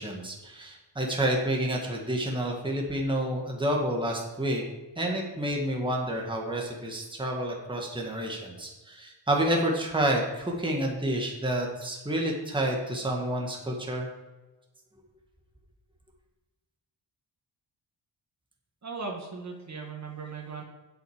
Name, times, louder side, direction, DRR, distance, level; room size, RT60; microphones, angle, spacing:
voice 1, 0.0-4.6 5.0-14.1, right 1 dB, 10° right, 0 dB, 1.7 m, -29 dB
voice 2, 18.8-20.6, right 4 dB, 40° right, 1 dB, 1.7 m, -38 dB
8.3 x 7.8 x 5.0 m, 1.2 s
cardioid pair, 100°, 42 cm